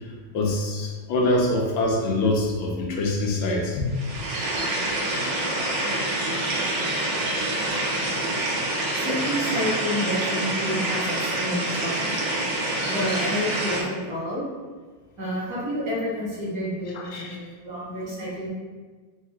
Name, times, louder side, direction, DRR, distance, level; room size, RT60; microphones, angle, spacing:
voice 1, 0.3-3.9 17.1-17.2, left 2 dB, 85° left, -1 dB, 1.5 m, -24 dB
sound 1, 3.9-13.8, right 1 dB, 75° right, 1.5 m, -26 dB
voice 2, 9.0-12.1 12.9-14.4 15.2-18.5, equal, 50° right, -6 dB, 1.4 m, -29 dB
4.1 x 2.8 x 3.4 m, 1.4 s
omnidirectional pair, 2.1 m